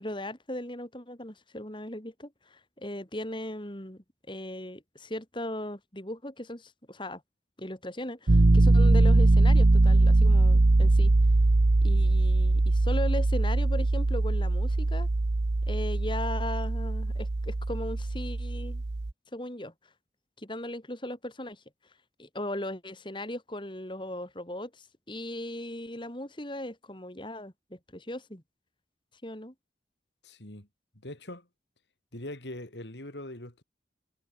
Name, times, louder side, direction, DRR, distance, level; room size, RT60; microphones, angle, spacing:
voice 1, 0.0-7.2 7.6-11.1 11.8-15.1 15.7-18.8 19.3-19.7 20.4-21.6 22.2-28.4 29.2-29.5, left 1 dB, 30° left, 4.1 m, -38 dB
Piano, 8.3-19.1, right 2 dB, 80° right, 0.9 m, -22 dB
voice 2, 30.2-30.7 31.0-31.5 32.1-33.6, left 1 dB, 80° left, 4.3 m, -41 dB
head